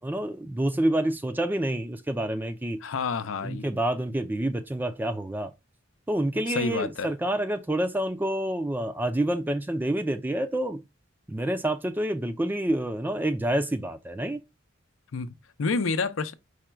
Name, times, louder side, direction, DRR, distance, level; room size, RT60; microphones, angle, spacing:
voice 1, 0.0-2.8 3.4-5.5 6.1-10.8 11.3-14.4, right 1 dB, 10° right, 0.4 m, -28 dB
voice 2, 2.8-3.7 6.5-7.1 15.1-16.3, left 4 dB, 75° left, 0.5 m, -29 dB
4.9 x 2.2 x 4.4 m
head